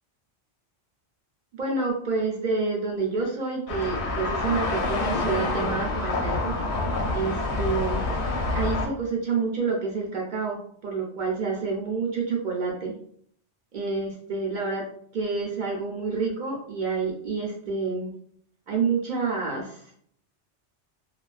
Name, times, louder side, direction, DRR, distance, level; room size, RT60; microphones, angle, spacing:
voice 1, 1.5-6.5 7.1-8.0 8.5-12.9 13.7-14.9 15.1-18.1 18.7-19.8, right 4 dB, 60° right, -1 dB, 0.5 m, -28 dB
sound 1, 3.7-8.9, left 2 dB, 70° left, 0.8 m, -27 dB
2.3 x 2.3 x 2.3 m, 0.63 s
omnidirectional pair, 1.2 m